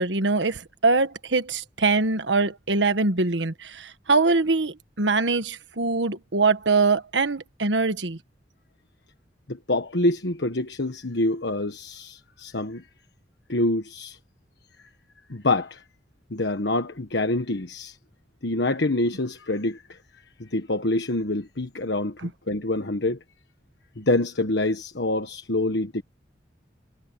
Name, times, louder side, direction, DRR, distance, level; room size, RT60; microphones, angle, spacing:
voice 1, 0.0-8.2 22.2-22.3, right 3 dB, 90° right, 1.4 m, -23 dB
voice 2, 9.5-12.8 13.5-14.2 15.3-15.8 16.3-18.0 18.4-20.0 20.4-23.2 24.0-26.0, left 2 dB, 75° left, 1.4 m, -26 dB
head